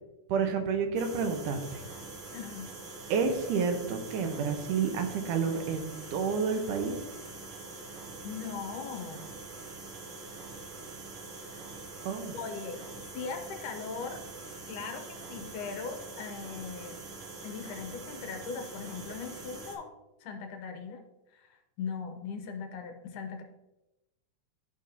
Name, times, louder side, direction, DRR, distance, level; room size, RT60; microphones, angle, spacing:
voice 1, 0.3-1.8 3.1-7.0 12.0-12.4, right 5 dB, 80° right, 5 dB, 2.4 m, -30 dB
sound 1, 1.0-19.8, right 3 dB, 60° right, 1.5 m, -44 dB
voice 2, 2.3-2.7 8.2-9.3 12.3-12.8 13.1-14.3 14.7-17.0 17.4-19.9 20.2-21.0 21.3-23.4, left 5 dB, 80° left, 5 dB, 2.4 m, -39 dB
11.5 x 5.3 x 2.8 m, 0.99 s
omnidirectional pair, 3.6 m